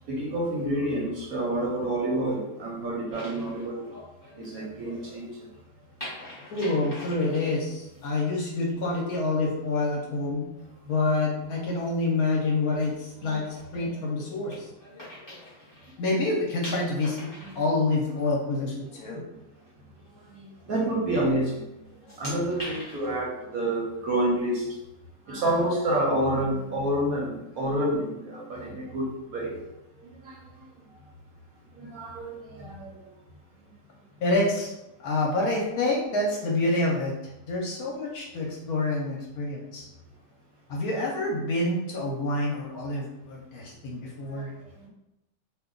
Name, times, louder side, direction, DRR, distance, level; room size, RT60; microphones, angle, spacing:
voice 1, 0.1-3.8 4.4-5.3 17.4-17.5 20.3-21.7 22.2-24.7 25.3-29.6 30.0-30.4 31.8-33.0 44.4-44.5 44.8-44.9, right 1 dB, 65° right, -3 dB, 0.9 m, -28 dB
sound 1, 3.1-5.2 6.0-8.1 11.0-11.3 11.8-12.0 12.6-16.0 16.2-18.4 18.8-19.1 19.5-19.7 20.6-20.9 21.3-21.6 21.8-23.1, left 1 dB, 20° left, 0.6 m, -44 dB
voice 2, 6.5-10.4 10.9-14.7 16.0-17.3 17.6-19.2 34.2-34.7 35.0-37.1 37.4-39.9 40.7-44.5, left 2 dB, 65° left, -2 dB, 1.0 m, -27 dB
2.7 x 2.2 x 3.7 m, 0.93 s
omnidirectional pair, 1.9 m